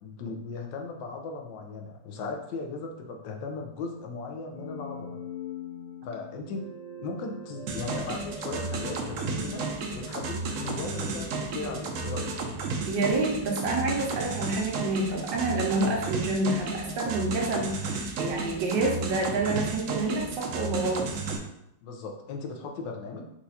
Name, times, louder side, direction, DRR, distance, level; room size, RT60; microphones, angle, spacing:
voice 1, 0.0-5.2 6.0-6.7 7.0-9.7 9.9-12.3 21.8-23.3, left 4 dB, 85° left, 3 dB, 1.4 m, -37 dB
sound 1, 4.5-13.5, left 3 dB, 25° left, 0.9 m, -43 dB
sound 2, 7.7-21.4, right 4 dB, 65° right, 0.8 m, -33 dB
voice 2, 12.8-21.1, right 2 dB, 90° right, 0 dB, 1.6 m, -28 dB
4.6 x 2.5 x 4.1 m, 0.82 s
omnidirectional pair, 1.9 m